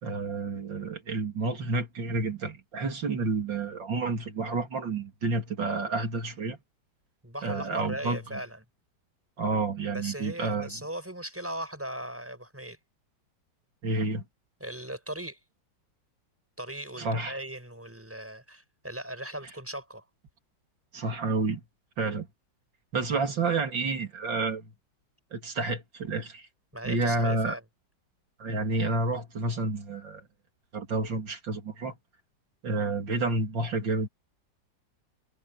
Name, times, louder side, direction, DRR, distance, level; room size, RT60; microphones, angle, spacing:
voice 1, 0.0-6.6 7.4-8.4 9.4-10.7 13.8-14.2 17.0-17.4 20.9-21.6 22.0-22.3 22.9-24.7 25.3-26.5 26.8-27.6 28.4-30.2 30.7-32.0 32.6-34.1, right 3 dB, 85° right, 3.6 m, -30 dB
voice 2, 7.2-8.6 9.9-12.8 14.6-15.4 16.6-20.1 26.7-27.6, right 1 dB, 5° right, 6.2 m, -38 dB
omnidirectional pair, 2.0 m